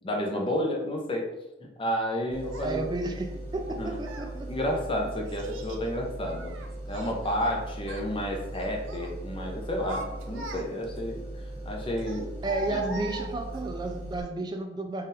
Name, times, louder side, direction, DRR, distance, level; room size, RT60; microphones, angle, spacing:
voice 1, 0.0-1.3 1.6-2.8 3.8-4.0 4.5-6.5 6.9-11.2 11.7-12.3 12.7-12.8, equal, 25° left, 1 dB, 0.7 m, -31 dB
sound 1, 2.3-14.2, right 1 dB, 10° left, 1.0 m, -39 dB
Child speech kid speaking, 2.5-2.7 3.6-4.3 5.3-5.9 6.3-7.5 7.8-8.1 8.5-9.1 9.6-11.0 12.0-13.7, right 1 dB, 75° right, 0.5 m, -41 dB
voice 2, 2.6-4.5 12.4-15.1, right 2 dB, 20° right, 4 dB, 0.4 m, -32 dB
3.9 x 2.5 x 4.0 m, 0.98 s
head